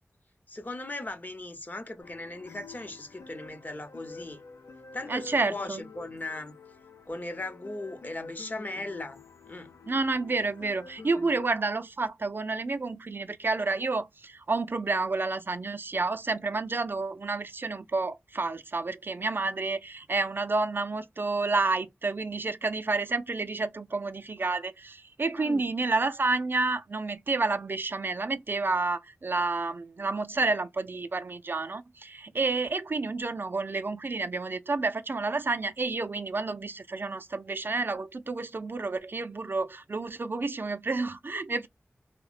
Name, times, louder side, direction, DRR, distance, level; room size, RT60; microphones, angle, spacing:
voice 1, 0.5-4.4 4.9-6.5 7.1-9.7 25.4-25.7, left 2 dB, 40° left, 0.7 m, -38 dB
sound 1, 2.0-11.5, left 4 dB, 85° left, 0.5 m, -48 dB
voice 2, 5.1-5.8 9.9-41.7, right 3 dB, 50° right, 0.3 m, -30 dB
2.6 x 2.1 x 2.4 m
cardioid pair, 45°, 5 cm